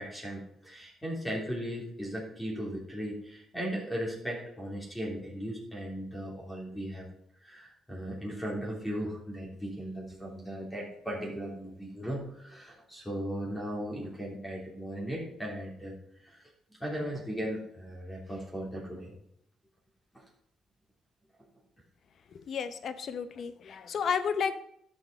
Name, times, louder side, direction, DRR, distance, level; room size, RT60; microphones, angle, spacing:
voice 1, 0.0-7.1 7.4-16.0 16.2-16.4 16.8-19.2, equal, 15° left, -3 dB, 3.4 m, -37 dB
voice 2, 22.3-24.5, left 6 dB, 60° left, 12 dB, 0.8 m, -32 dB
11.0 x 6.2 x 5.0 m, 0.70 s
cardioid pair, 90°, 0 cm